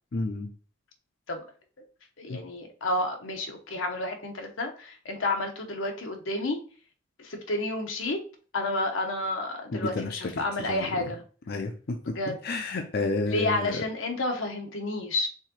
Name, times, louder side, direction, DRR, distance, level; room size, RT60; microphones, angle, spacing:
voice 1, 0.1-0.5 2.3-2.4 9.7-11.1 11.5-12.1 12.4-13.8, left 3 dB, 55° left, 4 dB, 0.5 m, -31 dB
voice 2, 2.2-6.6 7.2-8.2 8.5-11.2 12.1-12.4 13.3-15.3, left 2 dB, 90° left, 3 dB, 0.9 m, -30 dB
4.7 x 3.7 x 2.8 m, 0.40 s
head